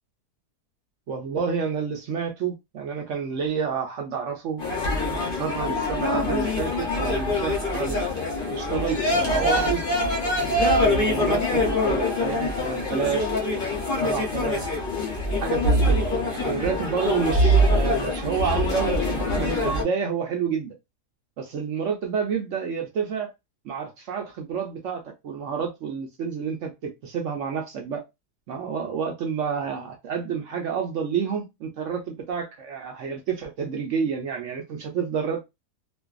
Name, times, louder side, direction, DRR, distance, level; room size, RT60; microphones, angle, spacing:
voice 1, 1.1-4.6 5.1-8.0 8.4-9.8 10.8-13.4 14.0-14.6 15.4-16.1 16.3-20.7 21.4-23.3 23.6-28.0 28.5-35.4, right 6 dB, 70° right, 0.7 m, -29 dB
sound 1, 4.6-19.8, left 1 dB, 50° left, 0.6 m, -24 dB
2.5 x 2.3 x 2.3 m
omnidirectional pair, 1.7 m